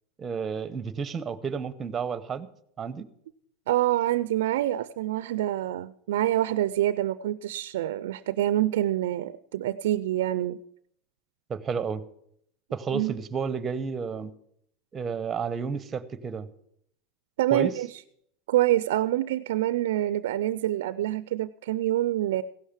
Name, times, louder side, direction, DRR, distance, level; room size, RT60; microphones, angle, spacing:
voice 1, 0.2-2.5 2.8-3.1 11.5-12.0 12.7-14.3 14.9-16.5 17.5-17.7, right 6 dB, 25° right, 13 dB, 0.8 m, -31 dB
voice 2, 3.7-10.6 12.9-13.1 17.4-18.0 18.5-22.4, right 13 dB, 85° right, 14 dB, 0.4 m, -26 dB
16.0 x 6.4 x 7.3 m, 0.71 s
supercardioid pair, 130°, 0 cm